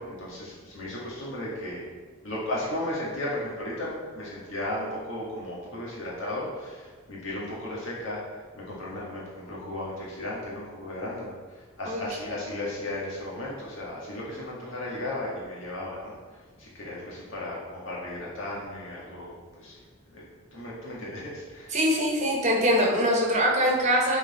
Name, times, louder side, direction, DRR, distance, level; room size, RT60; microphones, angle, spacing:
voice 1, 0.0-1.9 2.2-16.1 16.6-19.8 20.1-20.2 20.5-21.7, left 1 dB, 60° left, -6 dB, 1.9 m, -35 dB
voice 2, 21.7-24.2, equal, 30° right, -2 dB, 1.4 m, -23 dB
10.5 x 4.1 x 4.2 m, 1.5 s
head